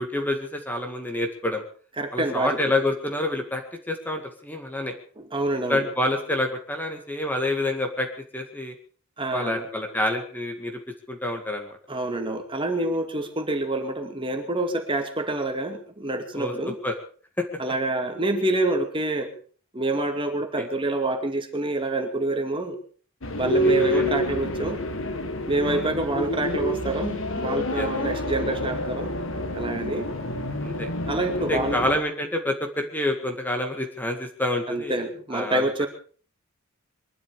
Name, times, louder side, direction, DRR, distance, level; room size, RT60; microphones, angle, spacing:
voice 1, 0.0-1.6 2.1-3.6 3.9-4.9 5.7-8.1 8.3-8.7 9.3-10.8 11.1-11.8 16.3-16.5 16.8-16.9 17.4-17.5 23.8-24.1 25.6-25.9 27.7-27.9 30.6-30.9 31.5-35.0 35.3-35.7, left 1 dB, 10° left, 4 dB, 2.0 m, -27 dB
voice 2, 2.0-2.6 5.2-5.8 9.2-9.7 11.9-16.8 17.6-19.3 19.7-22.8 23.4-24.8 25.5-29.1 29.5-30.1 31.1-31.8 34.7-35.9, right 2 dB, 25° right, 5 dB, 2.4 m, -27 dB
sound 1, 23.2-32.0, equal, 65° left, 2.0 m, -28 dB
23.5 x 12.0 x 5.0 m, 0.43 s
head